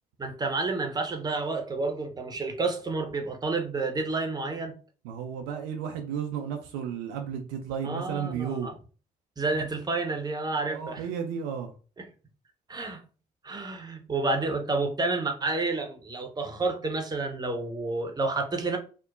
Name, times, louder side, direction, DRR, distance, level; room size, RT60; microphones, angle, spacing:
voice 1, 0.2-4.8 7.8-8.7 9.4-11.0 12.0-12.1 12.7-13.0 13.4-18.8, right 3 dB, 20° right, 0.7 m, -30 dB
voice 2, 5.0-8.7 10.7-11.7, right 7 dB, 70° right, 0.4 m, -33 dB
2.8 x 2.1 x 2.4 m
figure-of-eight pair, 45°, 20 cm